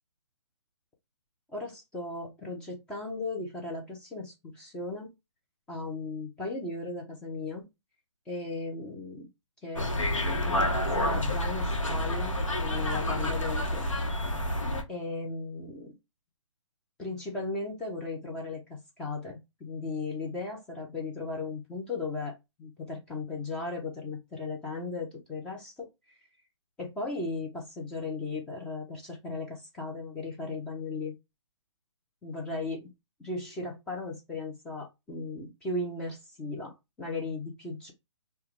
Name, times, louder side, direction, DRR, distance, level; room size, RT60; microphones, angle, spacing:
voice 1, 1.5-5.1 5.7-7.7 8.3-9.3 9.6-9.9 10.4-13.9 14.9-16.0 17.0-26.2 26.8-31.1 32.2-32.9 33.2-37.9, left 3 dB, 5° left, 0.3 m, -36 dB
sound 1, 9.8-14.8, left 1 dB, 90° left, 0.8 m, -29 dB
2.2 x 2.1 x 2.9 m
figure-of-eight pair, 145°, 16 cm